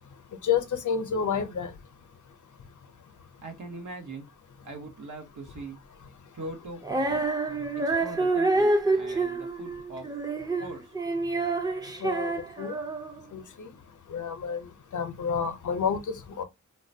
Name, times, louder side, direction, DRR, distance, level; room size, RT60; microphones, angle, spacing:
voice 1, 0.4-1.7 12.0-12.3 12.6-12.8 13.3-13.7 14.1-14.6 14.9-16.4, left 6 dB, 75° left, 0.7 m, -29 dB
voice 2, 3.4-4.3 4.6-5.8 6.3-7.3 7.8-10.1 10.6-11.0, right 2 dB, 80° right, 1.1 m, -41 dB
Female singing, 6.8-13.3, right 2 dB, 15° right, 0.5 m, -27 dB
3.8 x 2.2 x 2.7 m
wide cardioid pair, 125°, 30 cm